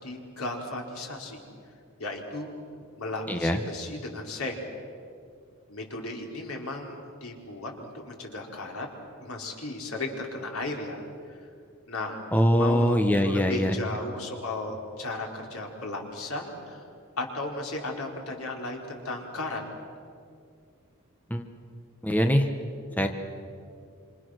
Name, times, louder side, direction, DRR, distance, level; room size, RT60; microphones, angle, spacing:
voice 1, 0.0-1.4 2.0-2.5 3.0-4.6 5.7-8.9 9.2-11.1 11.9-12.2 12.5-16.8 17.2-19.6, left 2 dB, 85° left, 0 dB, 4.2 m, -35 dB
voice 2, 3.3-3.6 12.3-13.8 21.3-21.4 22.0-22.4 23.0-23.1, equal, 10° left, 4 dB, 1.2 m, -22 dB
27.0 x 26.5 x 6.4 m, 2.4 s
head